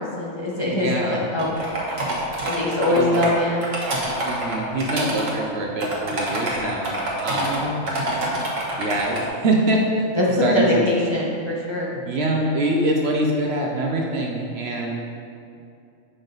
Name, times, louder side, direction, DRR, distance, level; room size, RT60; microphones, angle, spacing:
voice 1, 0.0-3.6 7.3-7.8 10.2-11.9, left 1 dB, 25° left, -6 dB, 0.9 m, -23 dB
voice 2, 0.7-1.2 2.9-3.3 4.2-7.7 8.8-10.1 10.4-10.8 12.0-15.0, right 1 dB, 60° right, 0 dB, 0.9 m, -24 dB
sound 1, 1.4-3.3 3.6-5.3 5.8-7.6 7.9-9.2, right 1 dB, 75° right, 1.6 m, -26 dB
8.1 x 5.2 x 3.9 m, 2.6 s
omnidirectional pair, 1.4 m